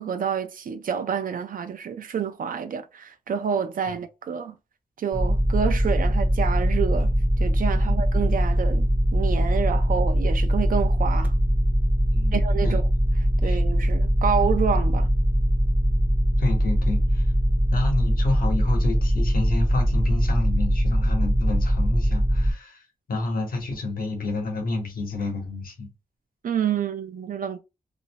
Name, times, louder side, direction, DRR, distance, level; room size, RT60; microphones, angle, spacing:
voice 1, 0.0-4.5 5.0-11.3 12.3-12.9 13.4-15.1 26.4-27.6, right 7 dB, 70° right, 0.4 m, -28 dB
sound 1, 5.1-22.5, equal, 10° right, 0.5 m, -21 dB
voice 2, 12.1-12.8 13.4-13.6 16.4-17.2 17.7-22.8 23.1-25.9, left 2 dB, 85° left, 0.9 m, -29 dB
2.5 x 2.1 x 2.7 m
wide cardioid pair, 145°, 15 cm